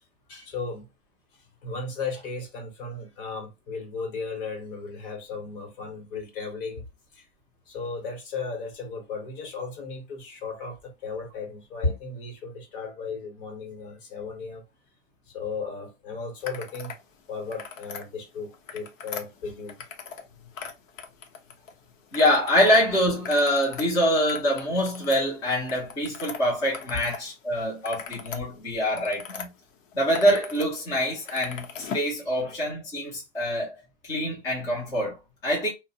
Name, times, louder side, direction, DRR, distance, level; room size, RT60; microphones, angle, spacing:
voice 1, 0.3-0.9 1.3-6.8 7.1-7.3 7.7-14.6 15.3-16.9 17.3-19.8 32.4-32.5, left 4 dB, 45° left, 0.9 m, -35 dB
sound 1, 16.4-17.0 17.4-18.0 18.5-20.3 20.5-21.7 22.1-22.8 23.1-27.2 27.6-29.5 29.9-30.7 30.9-32.1, left 6 dB, 85° left, 0.7 m, -39 dB
voice 2, 22.1-29.5 29.9-33.7 34.0-35.7, equal, 10° left, 0.4 m, -25 dB
2.7 x 2.0 x 2.6 m
hypercardioid pair, 145°, 38 cm